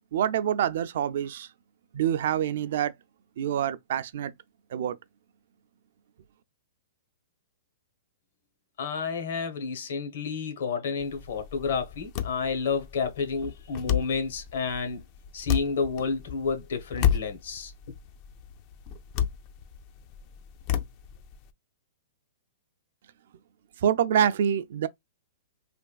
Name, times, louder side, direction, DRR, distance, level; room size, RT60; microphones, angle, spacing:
voice 1, 0.1-1.5 1.9-2.9 3.4-4.3 4.7-5.0 23.8-24.9, right 9 dB, 65° right, 0.3 m, -26 dB
voice 2, 8.8-15.0 15.3-17.7, left 5 dB, 70° left, 1.0 m, -30 dB
sound 1, 11.0-21.5, left 9 dB, 40° left, 0.3 m, -32 dB
3.3 x 2.4 x 2.2 m
hypercardioid pair, 145°, 0 cm